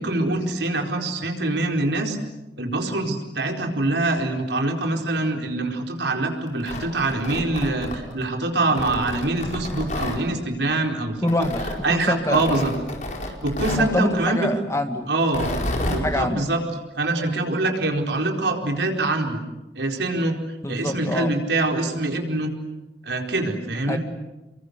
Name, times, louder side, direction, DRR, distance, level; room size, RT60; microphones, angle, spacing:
voice 1, 0.0-2.2 2.6-11.5 11.8-12.7 13.4-14.5 15.1-15.5 15.9-16.6 17.0-19.4 19.7-20.4 20.7-22.5 23.0-24.0, right 2 dB, 80° right, 2 dB, 4.5 m, -24 dB
Tearing, 6.5-8.3 8.8-10.2 11.3-11.8 12.3-13.9 15.2-16.0, left 1 dB, 45° left, 4.9 m, -30 dB
voice 2, 11.2-11.6 11.9-12.6 13.7-15.1 15.6-16.4 20.6-21.3 23.9-24.0, left 1 dB, 15° left, 7 dB, 1.9 m, -26 dB
30.0 x 23.5 x 8.2 m, 1.0 s
head